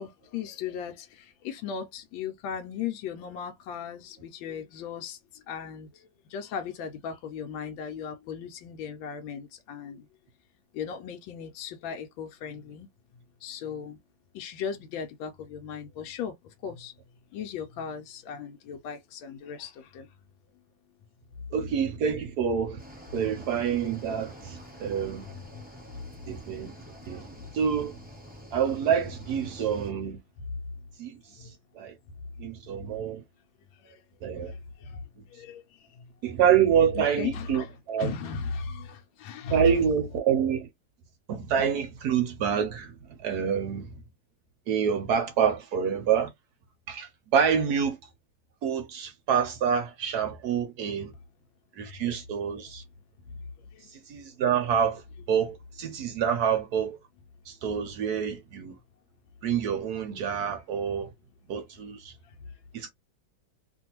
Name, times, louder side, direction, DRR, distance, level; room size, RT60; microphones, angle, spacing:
voice 1, 0.0-10.0 10.7-12.9 13.4-14.0 14.3-16.9 17.3-20.1 25.2-25.5 31.4-31.5 33.8-34.0 34.3-35.0 35.3-35.9 37.0-37.7 38.0-39.8 51.8-52.1 53.7-53.9 62.3-62.4, left 6 dB, 90° left, 1.3 m, -37 dB
voice 2, 21.5-22.8 23.1-25.2 26.3-26.7 27.1-27.3 27.5-28.0 28.5-30.2 31.0-31.1 31.4-31.5 31.8-31.9 32.4-33.2 34.2-34.5 36.2-38.1 39.5-40.7 41.3-42.9 43.2-43.9 44.7-46.3 46.9-48.0 48.6-51.1 51.8-52.8 53.9-55.0 55.3-57.0 57.5-58.8 59.4-61.1 61.5-62.1 62.7-62.9, right 8 dB, 70° right, 1.0 m, -27 dB
Cricket / Waves surf, 22.8-29.9, equal, 10° right, 0.4 m, -47 dB
2.9 x 2.6 x 2.8 m
omnidirectional pair, 2.1 m